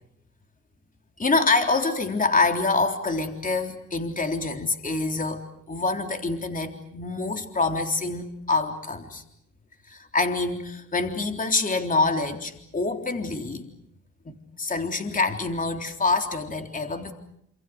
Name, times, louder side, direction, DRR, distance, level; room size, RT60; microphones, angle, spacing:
voice 1, 1.2-9.2 9.9-13.7 14.3-17.1, left 3 dB, 25° left, 5 dB, 3.7 m, -26 dB
29.0 x 28.0 x 6.4 m, 0.74 s
cardioid pair, 90°, 30 cm